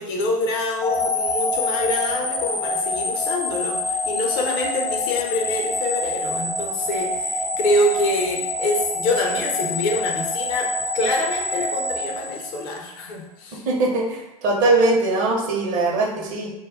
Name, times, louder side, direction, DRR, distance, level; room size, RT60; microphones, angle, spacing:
voice 1, 0.0-13.7, left 2 dB, 55° left, 1 dB, 0.7 m, -25 dB
sound 1, 0.8-13.0, left 2 dB, 15° left, 0.3 m, -26 dB
voice 2, 13.5-16.5, right 2 dB, 45° right, 0 dB, 0.7 m, -21 dB
2.2 x 2.1 x 3.5 m, 0.94 s
hypercardioid pair, 90°, 19 cm